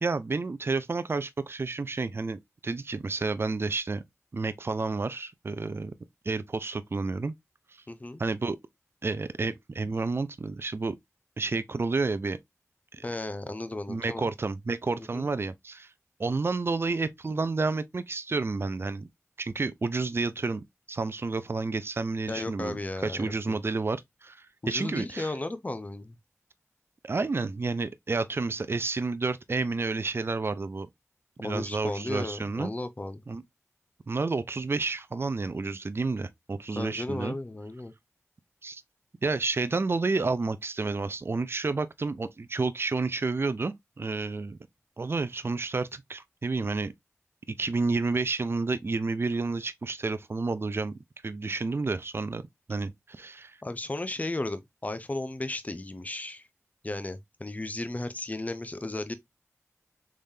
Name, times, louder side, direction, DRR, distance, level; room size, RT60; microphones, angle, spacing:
voice 1, 0.0-4.0 4.3-5.9 6.2-7.3 8.2-8.6 9.0-11.0 11.4-12.4 12.9-13.0 13.9-15.9 16.2-19.1 19.4-22.8 23.0-25.3 27.0-30.9 31.4-32.7 33.3-33.4 34.1-37.4 38.6-38.8 39.2-44.6 45.0-46.9 47.6-50.9 51.2-52.4 52.7-53.6, right 3 dB, 45° right, 0.5 m, -30 dB
voice 2, 7.9-8.2 13.0-14.3 15.1-15.3 22.3-23.6 24.6-26.2 31.4-33.2 36.8-37.9 53.6-56.4 56.8-59.1, left 2 dB, 30° left, 0.6 m, -35 dB
3.6 x 3.3 x 2.6 m
cardioid pair, 50°, 6 cm